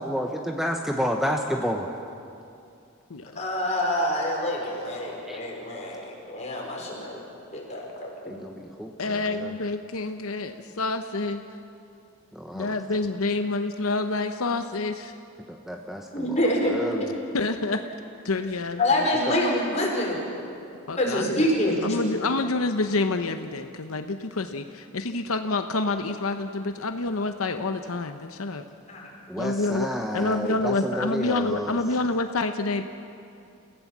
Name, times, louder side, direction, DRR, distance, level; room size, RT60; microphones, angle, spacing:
voice 1, 0.0-1.9 5.1-5.4 8.3-9.5 12.3-12.8 15.5-17.1 19.3-19.4 29.3-31.8, equal, ahead, 2 dB, 1.0 m, -30 dB
voice 2, 3.3-7.2 7.5-8.4 16.1-16.7 17.0-17.1 18.8-20.2 21.0-22.0 28.9-29.1, left 1 dB, 30° left, -2 dB, 5.0 m, -26 dB
voice 3, 9.0-11.4 12.5-15.1 17.3-17.8 18.2-19.1 20.9-21.5 21.8-28.6 29.4-29.9 30.1-32.8, left 3 dB, 80° left, 7 dB, 0.9 m, -28 dB
29.0 x 16.0 x 7.4 m, 2.6 s
head